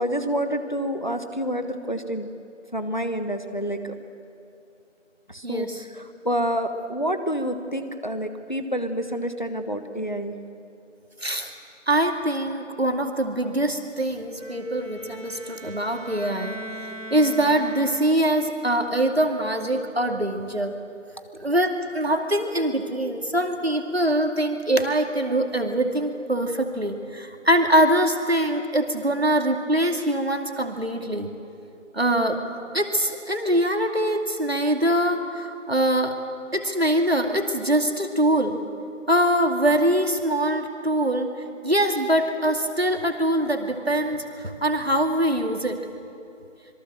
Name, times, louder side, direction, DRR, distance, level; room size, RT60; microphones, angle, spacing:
voice 1, 0.0-2.3 2.7-3.9 5.3-5.7 5.9-10.3, equal, 40° left, 8 dB, 1.2 m, -28 dB
voice 2, 5.4-5.8 11.2-11.5 11.9-16.6 17.1-20.7 21.4-31.3 31.9-32.4 32.7-36.2 36.5-38.6 39.1-41.3 41.6-45.8, right 1 dB, 55° right, 4 dB, 2.5 m, -23 dB
Bowed string instrument, 14.4-18.5, equal, 80° right, 1.9 m, -40 dB
26.0 x 22.5 x 7.6 m, 2.7 s
figure-of-eight pair, 175°, 38 cm